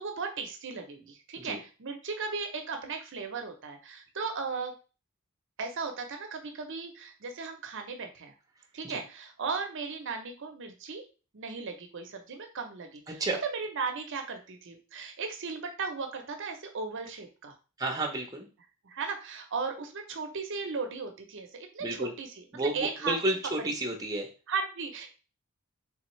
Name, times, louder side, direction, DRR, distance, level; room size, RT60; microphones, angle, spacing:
voice 1, 0.0-4.7 5.6-8.3 8.7-11.0 11.3-13.2 13.5-17.5 18.8-22.3 22.5-23.2 24.5-25.1, right 4 dB, 60° right, 5 dB, 0.6 m, -36 dB
voice 2, 13.1-13.4 17.8-18.5 21.8-22.1 22.5-24.3, right 2 dB, 15° right, 1 dB, 0.7 m, -31 dB
3.5 x 3.4 x 3.1 m, 0.34 s
head